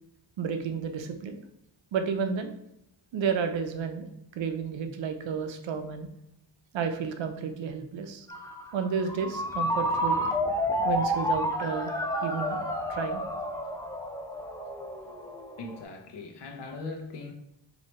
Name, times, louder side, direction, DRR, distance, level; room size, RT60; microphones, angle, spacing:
voice 1, 0.4-1.4 1.9-2.5 3.1-4.1 4.4-6.1 6.7-8.3 8.7-10.2 10.8-11.9 12.2-12.6 12.9-13.2, right 6 dB, 75° right, 7 dB, 0.6 m, -31 dB
Ringtone, 8.3-15.8, equal, 5° left, 0.6 m, -30 dB
voice 2, 15.6-17.3, left 3 dB, 65° left, 3 dB, 0.8 m, -39 dB
4.3 x 2.8 x 3.1 m, 0.80 s
cardioid pair, 70°, 46 cm